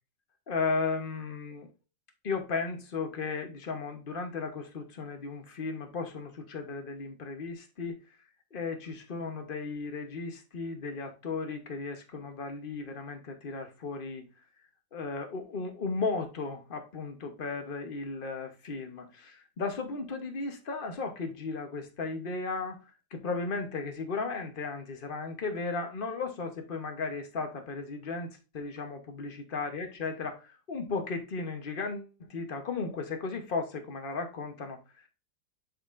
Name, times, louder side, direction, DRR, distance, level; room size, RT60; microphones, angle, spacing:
voice 1, 0.5-1.7 2.2-8.0 8.5-14.2 14.9-22.8 23.1-35.1, left 4 dB, 40° left, 0.9 m, -35 dB
11.0 x 4.3 x 2.5 m
omnidirectional pair, 2.0 m